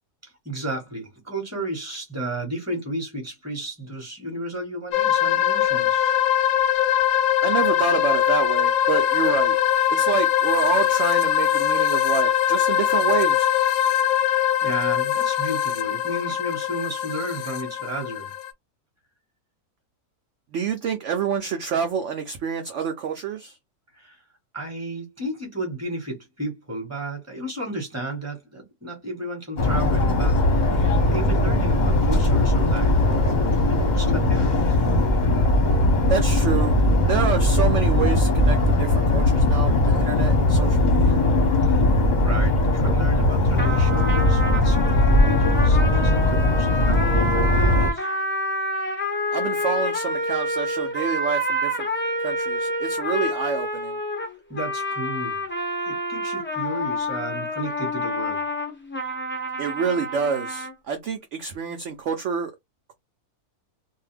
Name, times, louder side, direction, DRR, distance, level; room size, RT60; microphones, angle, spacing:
voice 1, 0.2-6.1 14.2-18.3 23.9-24.2 24.5-34.8 41.6-41.9 42.2-48.1 54.5-55.5 55.9-58.5, right 1 dB, 10° right, 1.3 m, -33 dB
sound 1, 4.9-18.5, left 11 dB, 70° left, 0.9 m, -22 dB
voice 2, 7.4-9.6 9.9-13.5 20.5-23.6 36.1-36.8 37.1-41.2 49.3-51.9 52.2-54.0 59.6-62.5, right 6 dB, 65° right, 0.8 m, -27 dB
sound 2, 29.6-47.9, left 1 dB, 35° left, 0.8 m, -19 dB
sound 3, 43.6-60.7, equal, 20° left, 0.3 m, -28 dB
2.7 x 2.2 x 3.2 m
omnidirectional pair, 1.6 m